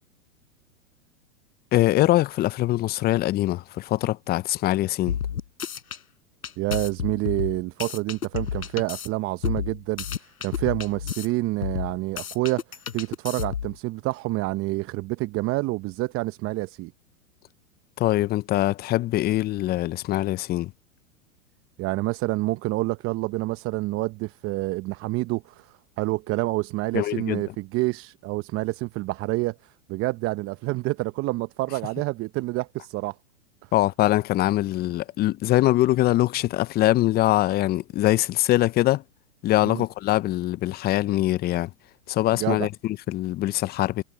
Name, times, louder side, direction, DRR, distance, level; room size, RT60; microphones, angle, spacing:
voice 1, 1.7-5.2 18.0-20.7 26.9-27.4 33.7-39.0 39.4-41.7 42.1-44.0, left 15 dB, 25° left, 0.6 m, -23 dB
sound 1, 5.1-6.0 6.4-9.1 9.4-11.3 11.6-13.8, left 8 dB, 80° left, 6.6 m, -31 dB
voice 2, 6.6-10.0 10.4-16.9 21.8-33.2 39.6-39.8 42.3-42.7, right 20 dB, 30° right, 0.9 m, -28 dB
hypercardioid pair, 105°, 43 cm